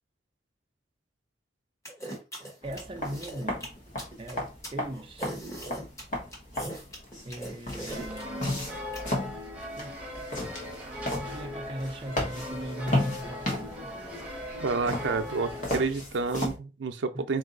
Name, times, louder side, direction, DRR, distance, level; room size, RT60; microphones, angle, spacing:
sound 1, 1.8-9.0, right 1 dB, 15° left, 1.2 m, -40 dB
sound 2, 2.6-16.6, left 1 dB, 45° left, 1.1 m, -35 dB
voice 1, 2.6-3.7 4.2-5.3 7.2-8.5 9.8-10.2 11.2-13.9 17.1-17.2, right 1 dB, 30° right, 0.5 m, -39 dB
sound 3, 7.9-15.9, left 1 dB, 10° right, 0.9 m, -39 dB
voice 2, 14.6-17.4, right 4 dB, 90° right, 0.5 m, -29 dB
3.9 x 2.6 x 3.8 m
head